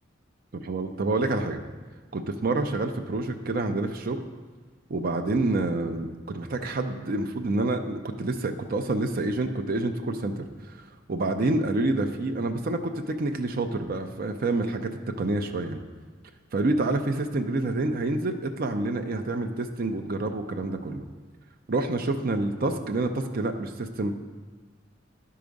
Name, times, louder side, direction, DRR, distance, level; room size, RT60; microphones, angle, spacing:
voice 1, 0.5-1.6 2.1-4.2 4.9-10.7 11.1-14.9 15.2-15.8 16.5-21.0 21.7-24.2, right 2 dB, 50° right, 5 dB, 0.5 m, -28 dB
11.0 x 4.7 x 5.2 m, 1.4 s
head